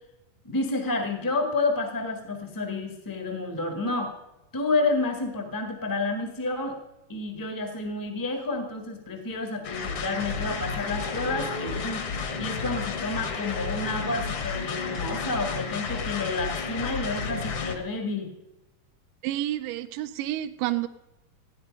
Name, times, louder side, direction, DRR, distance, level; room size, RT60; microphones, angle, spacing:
voice 1, 0.4-4.1 4.5-6.8 7.1-12.1 12.4-18.3, left 3 dB, 15° left, 5 dB, 0.7 m, -30 dB
sound 1, 9.6-17.8, left 5 dB, 55° left, 1.7 m, -32 dB
voice 2, 19.2-20.9, right 14 dB, 80° right, 9 dB, 2.1 m, -29 dB
15.5 x 9.8 x 5.3 m, 0.95 s
omnidirectional pair, 4.0 m